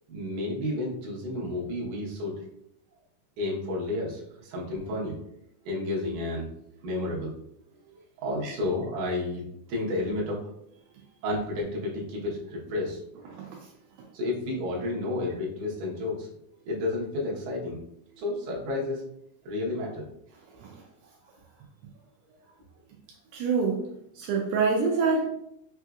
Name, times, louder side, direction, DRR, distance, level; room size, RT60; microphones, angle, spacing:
voice 1, 0.1-2.4 3.4-5.3 5.7-6.5 6.8-7.3 8.2-9.4 9.7-10.5 11.2-13.0 14.1-16.3 16.7-17.8 18.2-19.0 19.4-20.1, left 2 dB, 65° right, -4 dB, 2.4 m, -31 dB
voice 2, 13.3-13.7 20.5-20.8 23.3-23.8 24.2-25.3, right 4 dB, 85° right, -1 dB, 2.4 m, -26 dB
5.7 x 2.7 x 2.3 m, 0.76 s
omnidirectional pair, 4.3 m